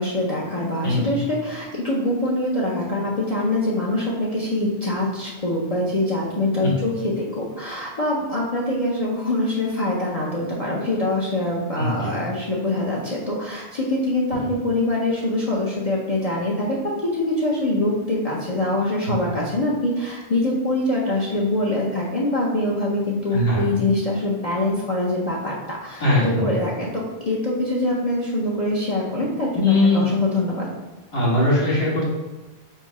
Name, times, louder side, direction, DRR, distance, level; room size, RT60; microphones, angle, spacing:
voice 1, 0.0-16.8 17.1-30.7, left 1 dB, 40° left, -5 dB, 0.7 m, -24 dB
voice 2, 11.8-12.1 23.3-23.7 26.0-26.5 29.5-30.0 31.1-32.1, left 1 dB, 70° left, -7 dB, 2.0 m, -20 dB
5.4 x 2.1 x 4.8 m, 1.1 s
omnidirectional pair, 1.1 m